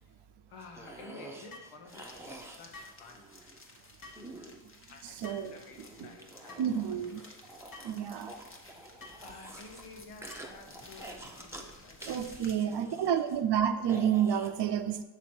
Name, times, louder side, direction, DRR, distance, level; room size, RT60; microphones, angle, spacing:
voice 1, 0.5-3.4 4.9-7.4 9.2-13.2, left 4 dB, 85° left, 2 dB, 1.1 m, -52 dB
sound 1, 0.6-3.6 4.2-5.1 5.7-9.8 10.2-11.7 12.0-14.5, right 2 dB, 5° right, 0.7 m, -48 dB
sound 2, 1.5-1.7 2.7-3.0 4.0-4.3 5.2-5.5 6.5-6.7 7.7-8.0 9.0-9.2 10.3-10.6, left 3 dB, 40° left, 1.2 m, -49 dB
sound 3, 1.9-12.6, left 2 dB, 25° left, 1.0 m, -54 dB
voice 2, 5.2-5.6 6.0-6.1 6.6-7.2 7.8-8.3 12.1-15.0, right 9 dB, 55° right, 9 dB, 0.6 m, -29 dB
6.0 x 4.0 x 4.4 m, 1.1 s
cardioid pair, 65°, 50 cm